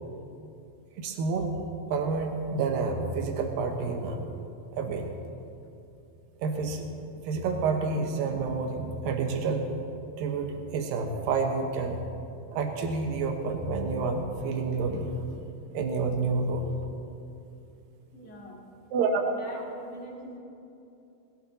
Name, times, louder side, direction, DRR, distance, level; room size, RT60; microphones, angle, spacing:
voice 1, 1.0-1.5 1.9-4.3 4.7-5.1 6.4-6.9 7.2-9.7 10.2-12.0 12.5-15.2 15.7-16.7 18.9-19.4, right 4 dB, 80° right, 3 dB, 2.0 m, -29 dB
voice 2, 18.1-18.6 19.3-20.4, right 1 dB, 40° left, -4 dB, 2.1 m, -44 dB
21.0 x 18.0 x 2.8 m, 2.7 s
omnidirectional pair, 5.5 m